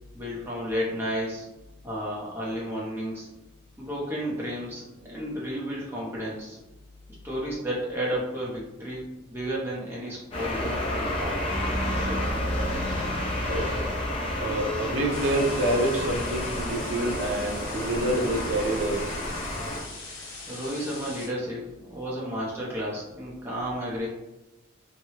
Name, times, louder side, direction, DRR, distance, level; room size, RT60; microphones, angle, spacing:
voice 1, 0.1-1.5 1.8-3.3 3.8-6.6 7.2-9.0 9.3-11.4 11.8-12.3 20.5-24.1, equal, 10° right, -6 dB, 0.7 m, -32 dB
sound 1, 10.3-19.8, left 1 dB, 25° left, 0.5 m, -30 dB
voice 2, 14.4-19.0, right 1 dB, 85° right, 2 dB, 0.5 m, -27 dB
sound 2, 15.1-21.3, left 3 dB, 85° left, 0.9 m, -41 dB
3.0 x 2.2 x 2.7 m, 1.0 s
head